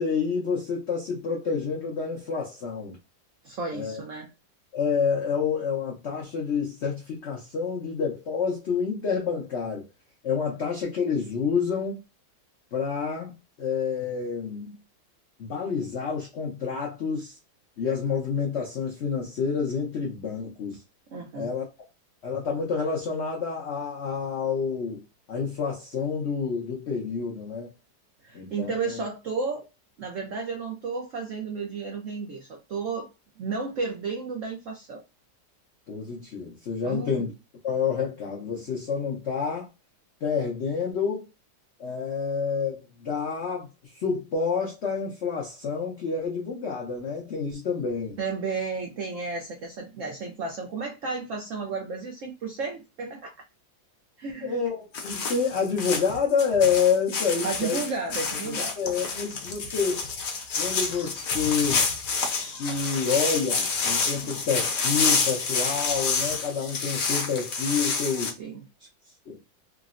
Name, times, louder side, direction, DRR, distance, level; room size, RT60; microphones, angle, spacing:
voice 1, 0.0-3.0 3.7-4.0 4.7-9.9 10.2-12.0 12.7-13.3 13.6-14.8 15.4-17.3 17.8-20.8 21.3-21.7 22.2-25.0 25.3-27.7 28.3-29.0 35.9-37.3 37.6-39.7 40.2-41.3 41.8-48.2 54.4-57.8 58.4-60.0 60.6-61.9 62.4-68.4 69.3-69.4, left 5 dB, 85° left, 0.6 m, -28 dB
voice 2, 3.4-4.3 21.1-21.5 28.2-29.6 30.0-33.1 33.4-35.0 36.8-37.2 48.2-53.3 54.2-54.6 57.4-58.7 68.4-68.7, right 4 dB, 90° right, 0.6 m, -33 dB
sound 1, 54.9-68.3, left 4 dB, 60° left, 0.9 m, -28 dB
3.6 x 2.0 x 2.4 m
omnidirectional pair, 2.1 m